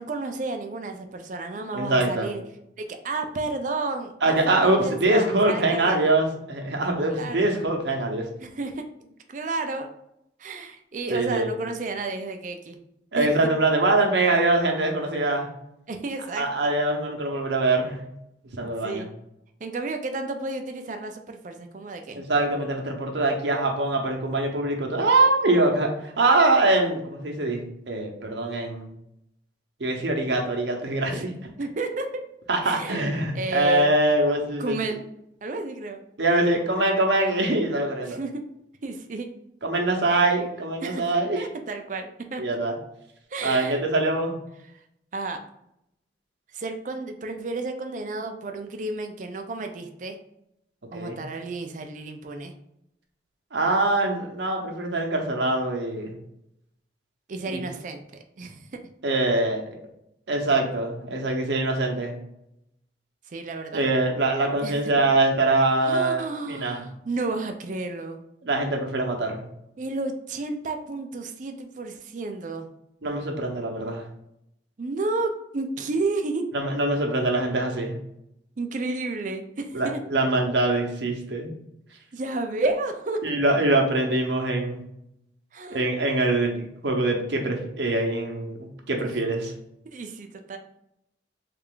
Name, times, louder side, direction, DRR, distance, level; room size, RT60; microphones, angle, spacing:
voice 1, 0.0-2.4 2.8-6.1 7.1-7.5 8.4-8.8 9.3-9.9 10.4-12.8 13.1-13.3 15.9-16.7 18.6-19.1 19.6-22.2 31.1-31.3 31.6-32.2 32.6-33.0 33.3-33.9 34.6-35.0 35.4-36.0 38.0-38.4 38.8-39.3 40.8-41.1 41.4-42.6 43.3-43.8 45.1-45.4 46.5-50.2 50.9-52.5 57.3-58.0 58.4-58.9 63.3-63.8 64.6-64.9 65.8-68.2 69.8-72.7 74.8-76.5 78.6-80.0 82.1-83.2 85.5-85.9 89.0-89.2 89.9-90.6, right 3 dB, 45° right, 6 dB, 0.4 m, -32 dB
voice 2, 1.7-2.3 4.2-8.3 11.1-11.5 13.1-15.5 16.3-18.0 18.6-19.1 22.1-27.6 27.9-28.9 29.8-31.3 32.5-34.8 36.2-38.2 39.6-41.5 42.4-42.7 43.4-44.4 50.9-51.2 53.5-56.1 57.5-57.6 59.0-59.8 60.3-62.1 63.7-66.8 68.4-69.4 73.0-74.0 76.5-78.0 79.7-81.5 83.2-84.8 85.7-89.5, right 2 dB, 80° right, 1 dB, 0.8 m, -23 dB
3.3 x 2.4 x 3.6 m, 0.79 s
head